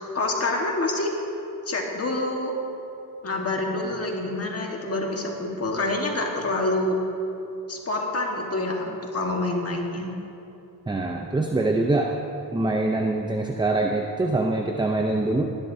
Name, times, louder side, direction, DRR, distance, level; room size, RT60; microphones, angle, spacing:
voice 1, 0.1-1.1 1.7-2.5 3.2-7.0 7.7-10.1, left 2 dB, 40° left, 0 dB, 1.6 m, -27 dB
voice 2, 10.9-12.2 12.5-15.4, right 2 dB, 10° right, 2 dB, 0.6 m, -24 dB
19.5 x 11.0 x 2.7 m, 2.8 s
cardioid pair, 100°, 39 cm